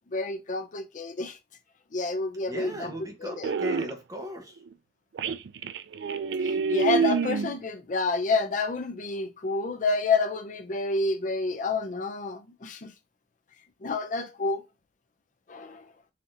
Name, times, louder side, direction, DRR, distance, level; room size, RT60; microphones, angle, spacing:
voice 1, 0.1-1.4 1.9-3.5 6.4-12.9 13.8-14.6 15.5-15.9, left 3 dB, 45° left, 0.6 m, -29 dB
voice 2, 2.5-4.6, equal, 20° right, 1.0 m, -38 dB
sound 1, 2.5-3.0 3.4-3.9 4.7-4.8 5.1-7.6, right 5 dB, 75° right, 0.3 m, -27 dB
4.2 x 2.8 x 3.9 m
head